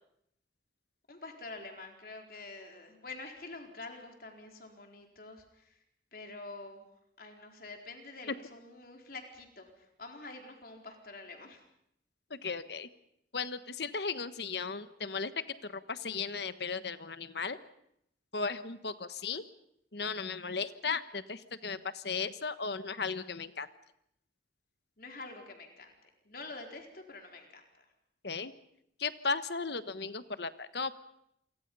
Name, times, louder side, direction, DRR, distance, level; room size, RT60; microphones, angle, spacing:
voice 1, 1.1-5.8 6.1-6.9 7.2-11.6 25.0-25.9 26.2-27.8, left 3 dB, 55° left, 3 dB, 4.4 m, -47 dB
voice 2, 12.3-12.9 13.3-15.3 15.6-17.6 18.3-19.4 19.9-23.7 28.2-28.5 29.0-30.9, left 4 dB, 70° left, 12 dB, 1.3 m, -36 dB
28.5 x 24.0 x 5.5 m, 0.74 s
head